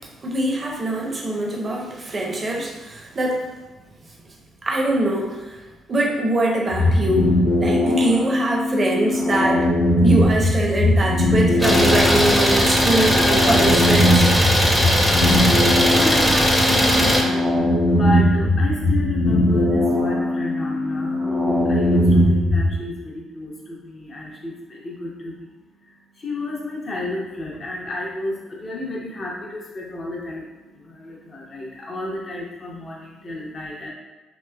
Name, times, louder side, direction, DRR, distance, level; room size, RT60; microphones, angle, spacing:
voice 1, 0.2-3.4 4.6-5.6 5.9-7.3 7.6-9.7 10.0-14.3 16.2-16.5, right 1 dB, 40° right, -1 dB, 0.7 m, -23 dB
sound 1, 6.7-22.7, left 1 dB, 70° right, 1.1 m, -20 dB
Idling, 11.6-17.2, equal, 5° left, 0.6 m, -18 dB
voice 2, 15.9-16.3 16.6-25.5 25.8-33.9, left 1 dB, 45° left, -3 dB, 0.7 m, -31 dB
3.0 x 2.9 x 2.2 m, 1.1 s
hypercardioid pair, 45°, 0 cm